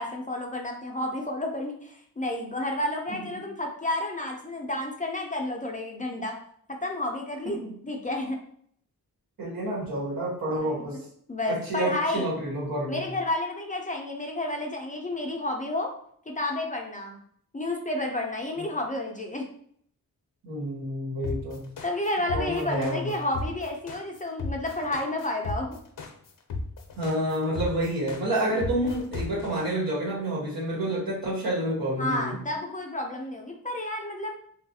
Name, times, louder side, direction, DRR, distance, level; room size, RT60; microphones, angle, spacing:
voice 1, 0.0-6.4 6.7-8.4 10.5-11.0 11.3-12.3 12.9-15.9 16.3-17.2 17.5-19.4 21.8-25.8 28.8-28.9 32.0-34.4, left 1 dB, 25° left, 1 dB, 0.4 m, -31 dB
voice 2, 9.4-11.0 11.5-13.1 18.6-18.7 20.4-21.6 22.3-23.1 27.0-32.4, right 1 dB, 80° right, -5 dB, 1.5 m, -29 dB
sound 1, 21.2-29.6, left 3 dB, 65° left, 0.6 m, -34 dB
3.2 x 2.3 x 2.7 m, 0.64 s
wide cardioid pair, 95°, 34 cm